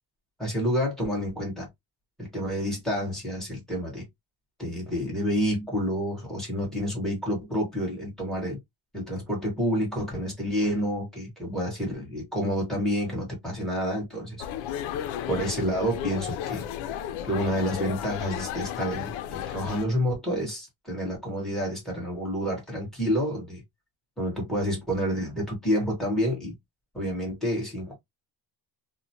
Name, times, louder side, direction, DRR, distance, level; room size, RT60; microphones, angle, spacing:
voice 1, 0.4-1.7 2.2-4.0 4.6-8.6 8.9-14.4 15.3-16.6 17.2-23.6 24.2-26.5 26.9-27.9, equal, ahead, 1.3 m, -29 dB
sound 1, 14.4-19.8, left 10 dB, 80° left, 0.5 m, -33 dB
2.9 x 2.1 x 2.7 m
cardioid pair, 165°, 47 cm